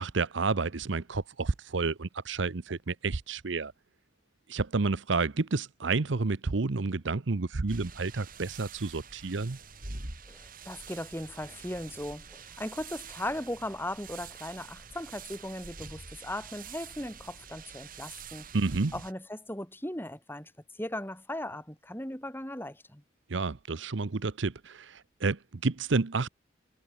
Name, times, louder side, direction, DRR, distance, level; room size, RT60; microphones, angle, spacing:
voice 1, 0.0-3.7 4.5-9.6 18.5-18.9 23.3-26.3, right 3 dB, 70° right, 0.8 m, -30 dB
sound 1, 7.7-19.1, right 4 dB, 45° right, 4.3 m, -46 dB
voice 2, 10.3-18.5 18.9-23.0, left 1 dB, 10° left, 4.6 m, -38 dB
head